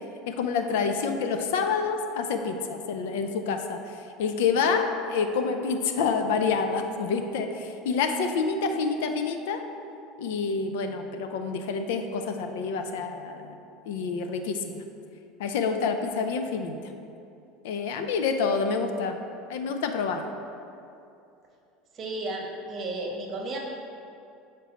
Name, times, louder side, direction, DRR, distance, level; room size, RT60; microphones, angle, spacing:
voice 1, 0.3-9.6 10.2-13.5 13.9-14.8 15.4-16.8 17.6-19.2 19.5-20.2, left 5 dB, 80° left, 6 dB, 0.5 m, -28 dB
voice 2, 21.9-23.6, right 2 dB, 35° right, 0 dB, 1.1 m, -33 dB
8.2 x 4.4 x 3.0 m, 2.7 s
supercardioid pair, 120°, 0 cm